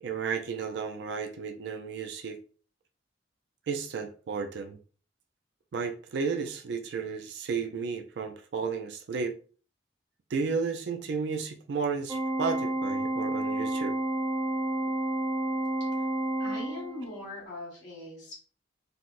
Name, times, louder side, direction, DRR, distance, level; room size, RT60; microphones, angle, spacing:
voice 1, 0.0-2.4 3.7-4.8 5.7-9.3 10.3-13.9, right 5 dB, 65° right, 0.4 m, -33 dB
Organ, 12.1-17.1, right 1 dB, 20° right, 1.1 m, -30 dB
voice 2, 16.4-18.4, left 2 dB, 65° left, 1.2 m, -40 dB
4.0 x 2.0 x 2.4 m
head